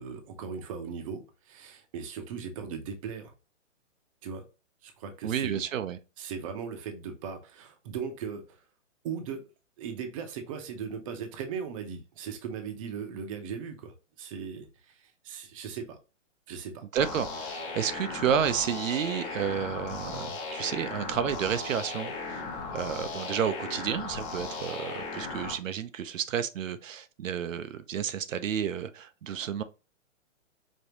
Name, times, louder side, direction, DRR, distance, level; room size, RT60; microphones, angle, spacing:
voice 1, 0.0-3.3 4.2-4.4 4.8-5.6 6.2-8.6 9.0-9.4 9.8-16.0 16.5-16.8, right 6 dB, 25° right, 0.7 m, -38 dB
voice 2, 5.2-6.0 16.9-22.4 22.7-29.6, right 8 dB, 80° right, 0.7 m, -31 dB
sound 1, 17.0-25.5, left 4 dB, 25° left, 0.9 m, -37 dB
5.2 x 2.7 x 2.8 m
hypercardioid pair, 155°, 38 cm